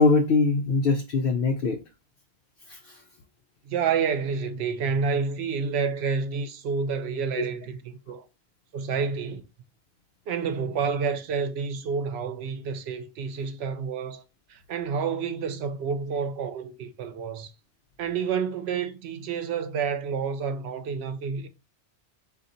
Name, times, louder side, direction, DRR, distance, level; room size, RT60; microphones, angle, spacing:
voice 1, 0.0-1.8 2.7-3.0 7.4-7.5, left 3 dB, 65° left, 0.7 m, -22 dB
voice 2, 3.6-8.2 8.7-9.4 10.3-14.2 14.5-17.5 18.0-21.5, right 6 dB, 80° right, 0.8 m, -29 dB
4.1 x 2.4 x 3.8 m
omnidirectional pair, 1.1 m